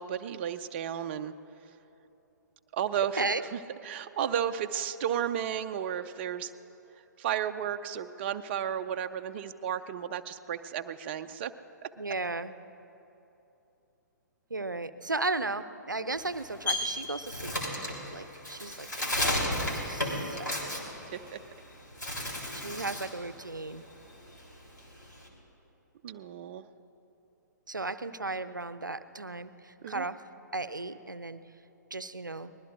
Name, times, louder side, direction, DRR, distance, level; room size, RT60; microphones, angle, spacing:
voice 1, 0.0-1.3 2.7-3.3 3.5-6.5 6.9-11.5 21.1-21.4 26.0-26.6 29.8-30.1, right 9 dB, 35° right, 9 dB, 0.5 m, -33 dB
voice 2, 12.0-12.5 14.5-17.5 17.8-19.4 19.9-20.9 22.5-23.8 27.7-30.2 30.5-31.4 31.9-32.5, right 3 dB, 85° right, 13 dB, 0.6 m, -35 dB
Bird, 16.1-21.6 21.9-23.2 23.5-25.3, left 1 dB, 75° left, 3.6 m, -33 dB
24.0 x 20.0 x 2.6 m, 2.9 s
figure-of-eight pair, 120°, 10 cm